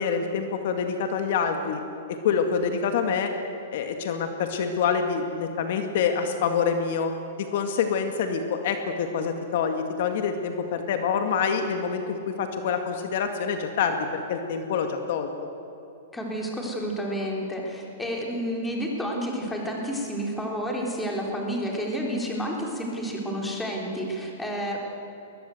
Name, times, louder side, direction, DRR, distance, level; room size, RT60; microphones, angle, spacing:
voice 1, 0.0-1.8 2.1-3.3 3.7-7.1 7.4-15.3, left 6 dB, 60° left, 5 dB, 2.1 m, -26 dB
voice 2, 16.1-24.9, equal, 5° left, -1 dB, 3.8 m, -30 dB
21.5 x 20.0 x 7.9 m, 2.8 s
hypercardioid pair, 155°, 0 cm